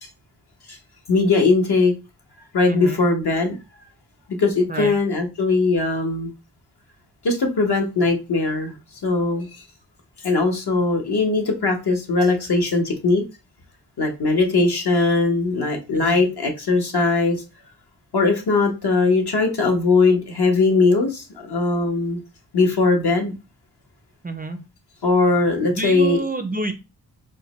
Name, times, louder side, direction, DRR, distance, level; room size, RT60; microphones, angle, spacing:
voice 1, 1.1-1.9 2.5-3.5 4.4-6.3 7.2-8.7 9.0-9.6 10.2-13.2 14.0-17.4 18.1-22.2 22.5-23.3 25.0-26.2, left 3 dB, 60° left, 3 dB, 1.1 m, -20 dB
voice 2, 2.6-3.0 4.7-4.9 15.9-16.2 24.2-24.6 25.7-26.7, right 2 dB, 20° right, 7 dB, 0.4 m, -28 dB
4.2 x 2.1 x 3.0 m, 0.28 s
cardioid pair, 60°, 43 cm